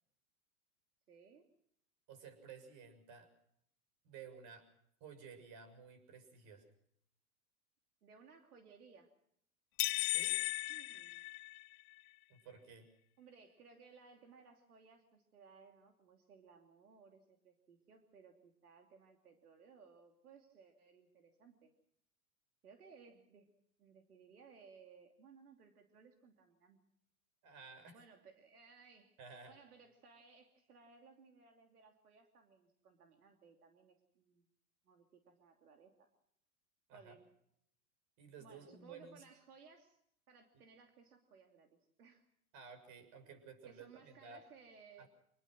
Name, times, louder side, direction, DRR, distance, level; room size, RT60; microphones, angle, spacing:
voice 1, 1.1-1.5 8.0-9.1 10.7-11.2 13.2-21.7 22.6-23.5 23.8-26.8 27.9-29.2 29.5-34.5 34.8-36.1 36.9-37.3 38.4-40.0 40.3-42.2 43.6-45.1, right 5 dB, 85° right, 4 dB, 3.0 m, -61 dB
voice 2, 2.1-3.3 4.0-4.7 5.0-6.7 10.1-10.4 12.3-12.9 27.4-28.0 29.2-29.6 36.9-37.1 38.2-39.2 40.5-40.6 42.5-44.4 45.0-45.1, right 5 dB, 45° right, 10 dB, 6.6 m, -54 dB
sound 1, 9.8-11.9, left 22 dB, 50° left, 0.8 m, -36 dB
26.5 x 20.5 x 6.1 m, 0.72 s
hypercardioid pair, 115°, 44 cm